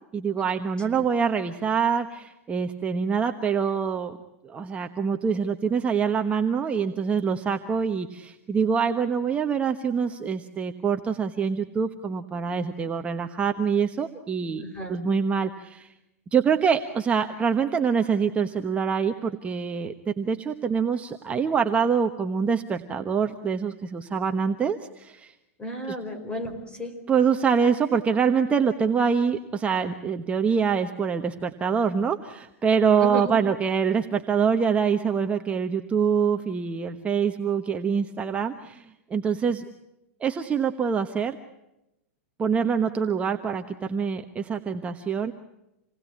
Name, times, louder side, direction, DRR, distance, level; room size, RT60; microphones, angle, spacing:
voice 1, 0.1-4.2 4.4-14.6 14.9-15.9 16.3-25.3 25.9-26.0 27.1-39.6 40.2-41.4 42.4-45.3, right 6 dB, 15° right, 5 dB, 1.2 m, -25 dB
voice 2, 14.6-15.0 25.6-27.0 33.0-33.4, equal, 15° left, 5 dB, 4.9 m, -33 dB
28.0 x 20.0 x 8.7 m, 0.90 s
supercardioid pair, 140°, 7 cm